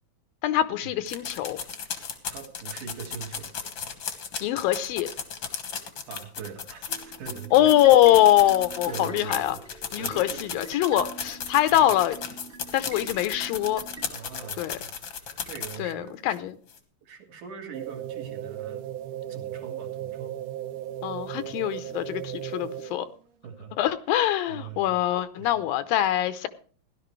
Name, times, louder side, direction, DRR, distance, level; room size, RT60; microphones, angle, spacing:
voice 1, 0.4-1.6 4.4-5.1 7.5-9.6 9.9-12.2 12.7-13.8 14.6-14.8 15.8-16.5 21.0-23.1 23.8-26.5, left 13 dB, 80° left, 12 dB, 2.5 m, -23 dB
sound 1, 1.1-15.9 16.3-16.4 16.7-16.8, left 6 dB, 50° left, 1.5 m, -35 dB
voice 2, 2.3-3.5 6.1-7.7 8.4-8.5 8.8-10.4 11.7-11.8 14.1-14.9 15.4-16.4 17.0-18.8 19.3-20.4 21.3-21.5 23.4-23.7 24.5-25.0 25.4-25.7, right 7 dB, 60° right, 2 dB, 3.3 m, -41 dB
sound 2, 6.9-14.1, right 3 dB, 30° right, 1.1 m, -45 dB
sound 3, 17.7-23.2, right 11 dB, 75° right, 2.1 m, -36 dB
17.0 x 11.5 x 3.2 m, 0.41 s
omnidirectional pair, 4.2 m